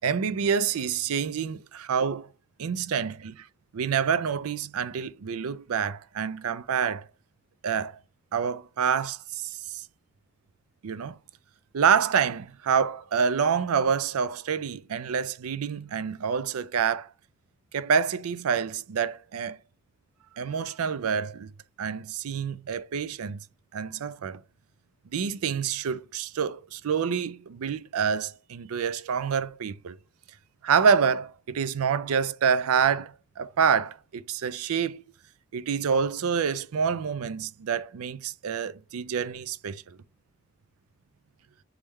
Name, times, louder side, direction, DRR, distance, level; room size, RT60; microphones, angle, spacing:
voice 1, 0.0-2.3 2.6-3.5 3.7-7.1 7.6-8.0 8.3-9.8 10.8-11.2 11.7-17.1 17.7-19.6 20.4-21.5 21.8-23.4 23.7-24.4 25.1-30.0 30.6-35.0 35.5-40.0, right 6 dB, 75° right, 0.4 m, -27 dB
3.5 x 3.3 x 3.1 m
head